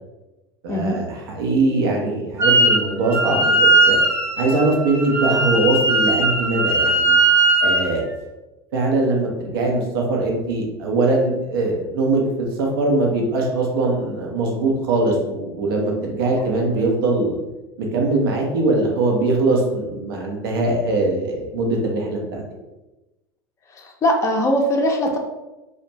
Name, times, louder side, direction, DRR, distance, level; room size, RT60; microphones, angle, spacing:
voice 1, 0.6-3.6 3.9-4.0 4.4-7.2 7.6-8.1 8.7-17.4 17.8-22.4, right 2 dB, 65° right, 0 dB, 0.6 m, -21 dB
Wind instrument woodwind instrument, 2.4-2.8 3.1-7.9, right 2 dB, 25° right, 0.8 m, -18 dB
voice 2, 23.7-25.2, equal, 25° left, 2 dB, 0.5 m, -20 dB
2.4 x 2.1 x 2.9 m, 1.0 s
figure-of-eight pair, 75°, 13 cm